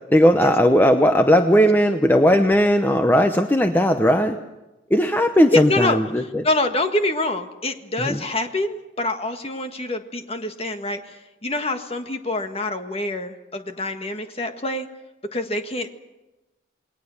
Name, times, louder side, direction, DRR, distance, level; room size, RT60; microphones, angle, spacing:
voice 1, 0.1-4.4 4.9-6.5 8.0-8.2, equal, 10° left, 6 dB, 0.9 m, -17 dB
voice 2, 5.5-14.9 15.3-15.9, left 2 dB, 30° left, 7 dB, 1.7 m, -26 dB
28.5 x 20.5 x 7.1 m, 1.0 s
head